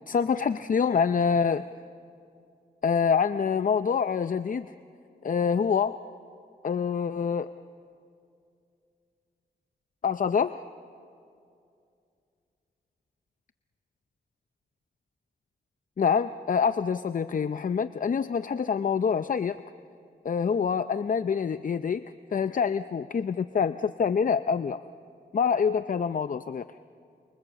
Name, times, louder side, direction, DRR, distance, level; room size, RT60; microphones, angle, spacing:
voice 1, 0.1-1.7 2.8-4.7 5.2-6.0 6.6-7.5 10.0-10.6 16.0-19.5 20.2-22.0 22.3-24.8 25.3-26.6, left 6 dB, 50° left, 11 dB, 0.6 m, -26 dB
28.5 x 27.5 x 7.3 m, 2.5 s
cardioid pair, 70°, 18 cm